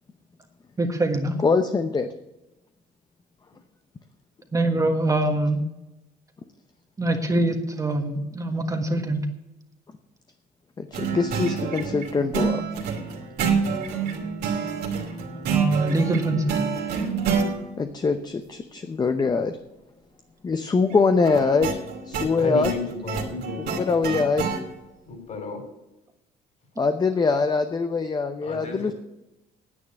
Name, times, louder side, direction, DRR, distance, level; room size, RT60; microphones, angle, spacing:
voice 1, 0.8-1.4 4.5-5.6 7.0-9.2 15.5-16.7, right 2 dB, 20° right, 4 dB, 1.5 m, -24 dB
voice 2, 1.4-2.1 10.8-12.6 17.8-19.6 20.4-21.8 22.1-22.7 23.8-24.5 26.8-28.9, left 4 dB, 25° left, 8 dB, 0.8 m, -23 dB
sound 1, 10.9-17.5 21.2-24.6, right 6 dB, 70° right, 2.8 m, -27 dB
voice 3, 22.4-23.8 25.1-25.6 28.4-28.9, left 3 dB, 45° left, 5 dB, 3.9 m, -32 dB
9.8 x 8.6 x 8.5 m, 0.96 s
cardioid pair, 110°, 17 cm